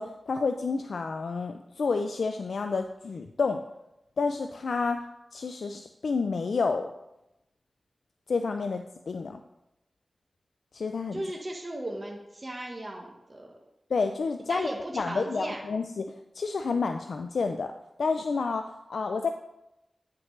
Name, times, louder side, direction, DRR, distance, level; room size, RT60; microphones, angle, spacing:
voice 1, 0.0-3.6 4.2-5.0 5.3-6.9 8.3-9.4 10.7-11.2 13.9-16.0 16.3-17.7 18.0-19.3, left 4 dB, 90° left, 6 dB, 0.4 m, -29 dB
voice 2, 11.1-13.6 14.5-15.6, right 1 dB, 35° right, -1 dB, 1.3 m, -36 dB
9.4 x 5.9 x 3.3 m, 0.88 s
cardioid pair, 55°, 0 cm